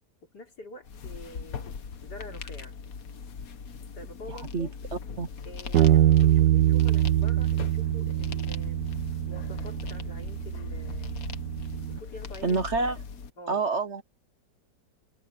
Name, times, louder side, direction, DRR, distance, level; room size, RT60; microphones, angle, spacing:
voice 1, 0.3-1.8 2.0-2.8 4.0-4.8 5.4-8.9 9.3-11.3 11.9-12.6 13.4-13.6, left 1 dB, 70° left, 4.1 m, -46 dB
sound 1, 0.8-13.3, left 5 dB, 55° left, 1.6 m, -40 dB
voice 2, 4.3-4.7 5.2-5.3 12.4-13.0 13.5-14.0, right 4 dB, 50° right, 1.0 m, -27 dB
Bass guitar, 5.7-12.0, right 13 dB, 80° right, 1.5 m, -24 dB
omnidirectional pair, 1.8 m